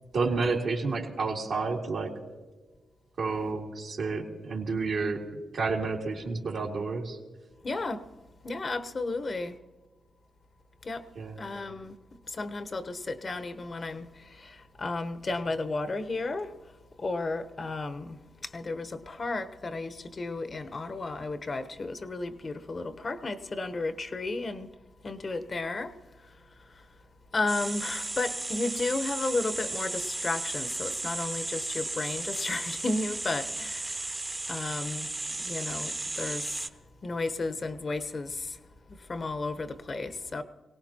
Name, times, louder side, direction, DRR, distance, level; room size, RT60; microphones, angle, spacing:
voice 1, 0.1-2.1 3.2-5.2 5.5-7.2 11.2-11.4, right 4 dB, 75° right, 2.3 m, -30 dB
voice 2, 7.6-8.0 8.4-9.5 10.8-11.0 11.4-12.0 12.3-16.5 17.0-18.2 18.4-24.7 25.0-25.9 27.3-34.2 34.5-35.1 35.4-36.6 37.0-38.6 39.1-40.4, left 3 dB, 45° left, 1.0 m, -33 dB
sound 1, 27.5-36.7, right 2 dB, 30° right, 1.0 m, -35 dB
22.5 x 18.0 x 2.9 m
supercardioid pair, 45°, 0 cm